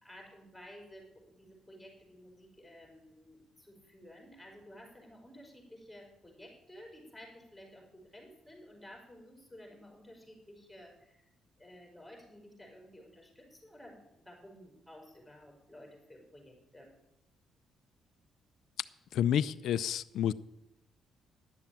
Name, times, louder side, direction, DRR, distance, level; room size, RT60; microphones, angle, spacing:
voice 1, 0.0-11.2 11.6-16.9, equal, 5° left, 0 dB, 4.6 m, -53 dB
voice 2, 19.1-20.3, left 10 dB, 75° left, 14 dB, 0.4 m, -29 dB
11.0 x 7.0 x 9.0 m, 0.88 s
cardioid pair, 90°, 0 cm